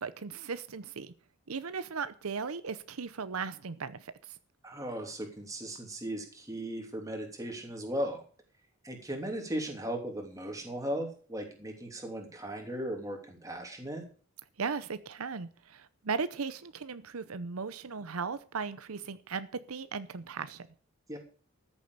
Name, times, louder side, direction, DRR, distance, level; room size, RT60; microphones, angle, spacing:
voice 1, 0.0-1.1 1.5-4.4 14.6-20.7, right 5 dB, 85° right, 13 dB, 0.7 m, -37 dB
voice 2, 4.6-8.2 8.8-14.1 21.1-21.2, right 1 dB, 15° right, 2 dB, 3.1 m, -37 dB
14.0 x 7.5 x 6.7 m, 0.42 s
head